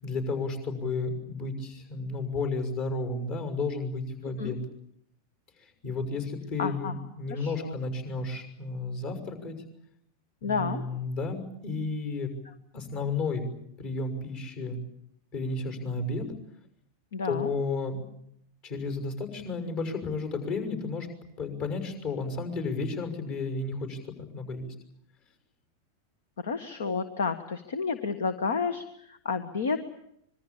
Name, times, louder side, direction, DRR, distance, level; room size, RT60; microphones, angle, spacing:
voice 1, 0.0-4.6 5.8-9.5 10.4-12.3 12.7-13.4 13.8-14.8 15.3-16.3 17.2-18.0 18.6-21.1 21.4-24.0 24.3-24.7, left 3 dB, 45° left, 7 dB, 6.2 m, -32 dB
voice 2, 6.6-6.9 7.3-7.7 10.4-10.8 12.4-12.5 17.1-17.5 26.4-29.8, left 5 dB, 65° left, 11 dB, 1.5 m, -31 dB
26.0 x 22.5 x 8.8 m, 0.74 s
figure-of-eight pair, 90°, 0 cm